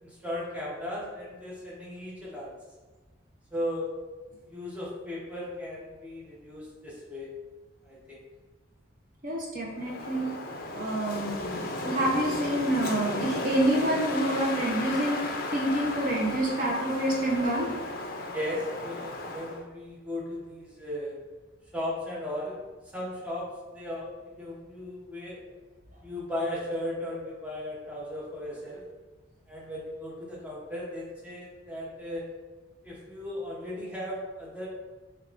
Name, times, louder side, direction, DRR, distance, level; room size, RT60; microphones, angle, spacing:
voice 1, 0.0-2.5 3.5-3.9 4.5-7.3 7.8-8.2 18.3-21.2 21.7-22.6 22.9-25.4 26.0-28.8 29.5-32.2 32.8-34.7, left 1 dB, 5° right, -5 dB, 0.8 m, -36 dB
voice 2, 9.2-10.3 10.7-17.7, right 1 dB, 45° right, -2 dB, 0.6 m, -28 dB
Wind, 9.7-19.6, left 2 dB, 50° left, 0.4 m, -35 dB
6.4 x 2.3 x 2.5 m, 1.3 s
head